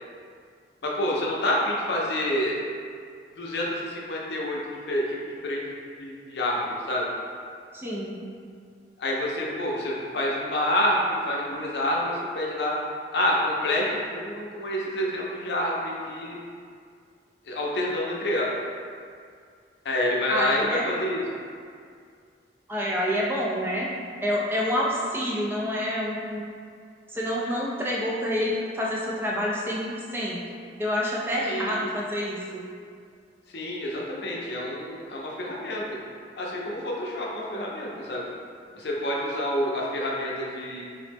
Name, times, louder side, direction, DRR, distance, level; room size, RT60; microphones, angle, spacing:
voice 1, 0.8-2.5 3.4-4.6 4.9-5.2 5.4-5.6 6.0-7.1 9.0-12.8 13.1-16.4 17.4-18.5 19.8-21.2 31.4-31.8 33.5-35.8 36.4-38.3 38.7-40.8, left 1 dB, 65° left, -3 dB, 0.5 m, -28 dB
voice 2, 7.7-8.2 20.3-20.9 22.7-23.9 24.2-26.5 27.1-30.4 30.8-32.7, equal, 10° right, -5 dB, 0.3 m, -28 dB
3.8 x 2.0 x 3.3 m, 2.2 s
head